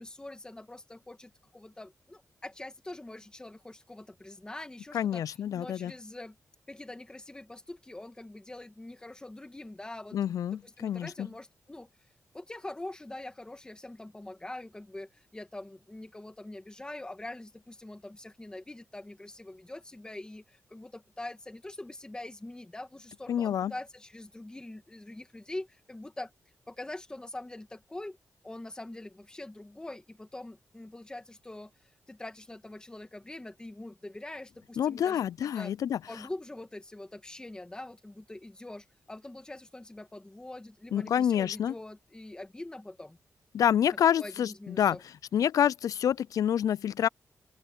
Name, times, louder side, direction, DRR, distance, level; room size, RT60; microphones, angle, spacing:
voice 1, 0.0-6.4 6.7-11.9 12.3-26.3 26.7-28.2 28.4-35.7 36.1-43.2 44.2-45.0, left 2 dB, 15° left, 1.8 m, -44 dB
voice 2, 4.9-5.9 10.1-11.3 23.3-23.7 34.8-36.0 40.9-41.7 43.5-45.0 45.3-47.1, left 9 dB, 80° left, 0.3 m, -27 dB
open air
wide cardioid pair, 125°, 6 cm